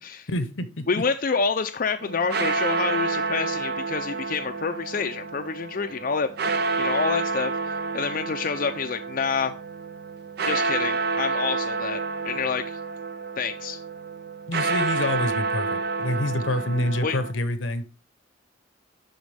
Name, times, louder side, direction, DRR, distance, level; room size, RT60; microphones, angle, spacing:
voice 1, 0.3-1.0 14.5-17.8, left 1 dB, 80° left, 11 dB, 0.9 m, -27 dB
voice 2, 0.9-6.3 6.8-7.5 7.9-9.5 10.4-12.8 13.4-13.8 17.0-17.2, left 5 dB, 45° left, 6 dB, 0.5 m, -28 dB
sound 1, 2.0-17.3, right 4 dB, 55° right, 0.6 m, -29 dB
11.5 x 4.0 x 3.3 m, 0.33 s
head